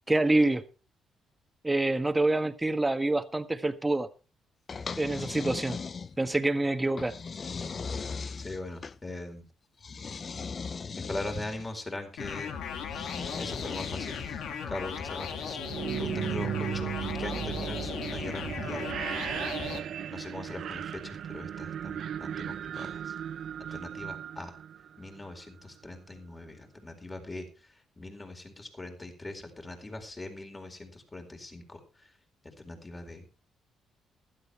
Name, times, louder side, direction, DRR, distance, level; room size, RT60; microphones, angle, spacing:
voice 1, 0.1-0.6 1.6-4.1 5.0-5.8 6.2-7.1, right 2 dB, 15° right, 1.5 m, -26 dB
sound 1, 4.7-6.4 7.0-9.0 9.8-11.7 12.9-14.5, left 5 dB, 40° left, 0.7 m, -38 dB
voice 2, 8.4-9.5 10.9-12.6 13.4-14.2 14.7-15.6 16.0-18.9 20.1-23.1 23.6-24.6 25.0-27.5 28.0-31.8 32.4-33.2, left 2 dB, 20° left, 4.3 m, -41 dB
sound 2, 12.2-19.8, left 7 dB, 80° left, 2.0 m, -37 dB
sound 3, 15.5-25.4, right 9 dB, 65° right, 0.6 m, -36 dB
16.0 x 13.0 x 3.3 m
cardioid pair, 90°, 0 cm